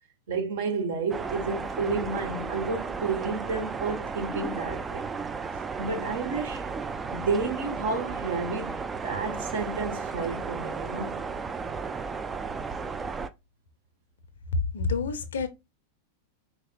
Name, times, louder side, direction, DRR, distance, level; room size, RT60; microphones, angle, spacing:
voice 1, 0.3-5.0 5.8-6.7 7.1-8.7 9.0-11.2, right 4 dB, 55° right, 0.9 m, -31 dB
sound 1, 1.1-13.3, right 5 dB, 15° right, 0.3 m, -34 dB
voice 2, 14.5-15.5, left 4 dB, 65° left, 0.5 m, -27 dB
4.6 x 3.0 x 2.2 m
figure-of-eight pair, 90°, 0 cm